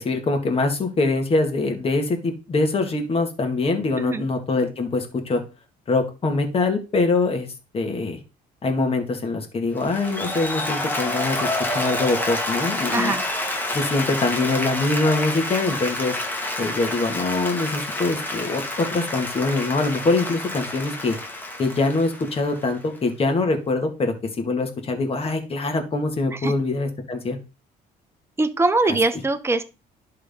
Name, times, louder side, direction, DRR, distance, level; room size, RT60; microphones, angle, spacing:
voice 1, 0.0-5.4 5.9-8.2 8.6-13.1 13.7-16.1 16.6-21.2 21.6-27.4, left 3 dB, 35° left, 5 dB, 1.9 m, -24 dB
Applause, 9.8-23.0, left 1 dB, 10° left, 1.7 m, -28 dB
voice 2, 12.9-13.3 26.3-26.5 28.4-29.6, right 3 dB, 15° right, 9 dB, 0.9 m, -22 dB
11.0 x 3.8 x 3.7 m, 0.31 s
cardioid pair, 110°, 17 cm